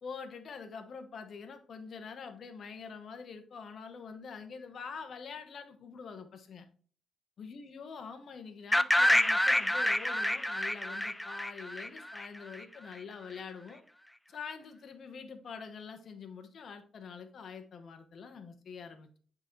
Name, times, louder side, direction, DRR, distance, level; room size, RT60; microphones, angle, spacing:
voice 1, 0.0-6.7 7.4-13.8 14.3-19.2, left 5 dB, 50° left, 7 dB, 1.0 m, -45 dB
sound 1, 8.7-12.6, left 1 dB, 5° left, 0.4 m, -28 dB
8.2 x 3.9 x 3.1 m, 0.43 s
cardioid pair, 130°, 0 cm